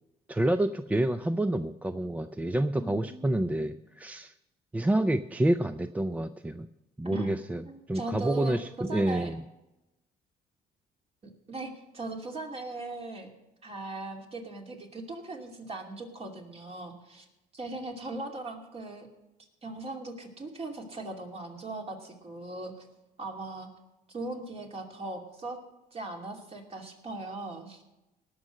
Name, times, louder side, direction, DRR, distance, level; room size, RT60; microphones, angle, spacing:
voice 1, 0.3-4.3 4.7-6.7 7.0-7.6 7.9-9.4, right 1 dB, 10° right, 11 dB, 0.4 m, -28 dB
voice 2, 2.7-3.6 7.0-7.3 7.6-9.3 11.2-13.3 13.6-17.3 17.5-19.1 19.6-22.9 23.2-23.7 24.1-25.6 25.9-27.8, right 2 dB, 35° right, 2 dB, 2.6 m, -39 dB
18.5 x 6.3 x 6.4 m, 0.97 s
cardioid pair, 110°, 17 cm